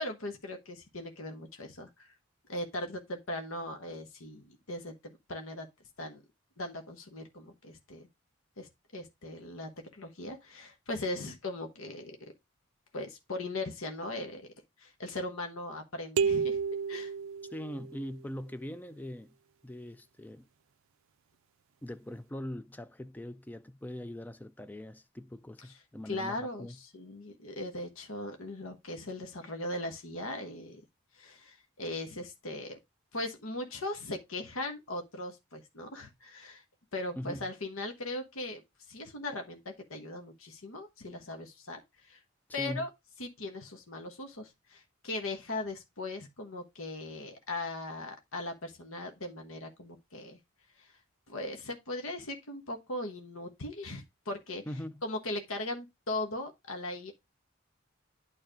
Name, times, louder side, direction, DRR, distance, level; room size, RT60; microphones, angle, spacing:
voice 1, 0.0-2.1 2.5-5.7 6.0-6.2 6.6-8.1 8.6-12.2 12.9-14.5 14.8-16.6 16.9-17.1 26.1-30.8 31.2-32.8 33.1-36.6 36.9-38.6 38.9-42.2 42.5-42.9 43.2-50.4 50.8-50.9 51.3-54.6 55.0-57.1, left 2 dB, 85° left, 1.2 m, -39 dB
sound 1, 16.2-18.0, right 6 dB, 75° right, 0.4 m, -31 dB
voice 2, 17.5-19.4 19.6-20.5 21.8-26.8 37.1-37.5 42.6-42.9 54.7-55.0, left 1 dB, 10° left, 0.4 m, -41 dB
9.0 x 3.3 x 5.0 m
head